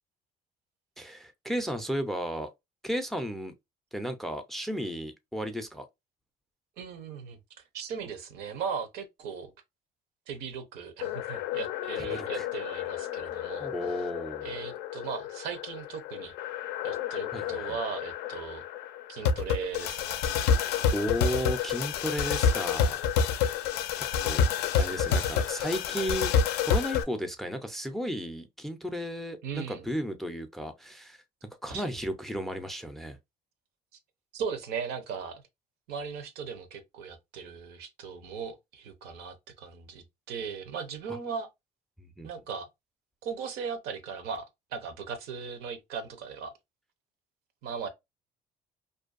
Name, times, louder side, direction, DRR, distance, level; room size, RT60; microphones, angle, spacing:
voice 1, 1.0-2.5 2.8-3.5 3.9-5.9 12.0-12.5 13.6-14.6 17.3-17.8 20.4-20.7 20.9-23.0 24.0-24.4 24.8-26.3 26.6-31.2 31.6-33.2 42.0-42.3, equal, ahead, 0.3 m, -34 dB
voice 2, 6.8-7.4 7.7-9.5 10.3-13.7 14.4-16.3 16.8-18.6 19.1-20.3 24.7-25.3 29.4-29.8 31.7-31.8 34.3-35.4 35.9-41.5 42.2-42.7 43.2-46.5 47.6-47.9, right 6 dB, 85° right, 0.7 m, -38 dB
sound 1, 11.0-27.0, left 7 dB, 85° left, 0.4 m, -29 dB
2.6 x 2.2 x 2.3 m
cardioid pair, 130°, 16 cm